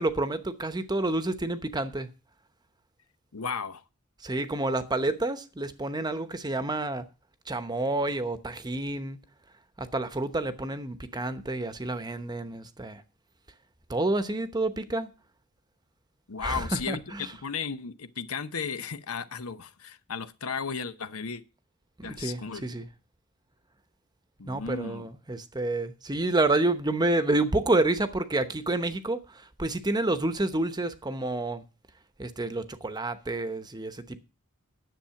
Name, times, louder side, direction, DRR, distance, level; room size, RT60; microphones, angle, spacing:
voice 1, 0.0-2.1 4.2-7.0 7.5-9.2 9.8-13.0 13.9-15.1 16.4-17.3 22.0-22.9 24.5-31.6 32.2-34.2, right 2 dB, 20° right, 0.9 m, -29 dB
voice 2, 3.3-3.8 16.3-17.0 17.4-21.4 22.0-22.7 24.4-25.1, left 6 dB, 85° left, 0.8 m, -35 dB
10.5 x 7.3 x 5.8 m
head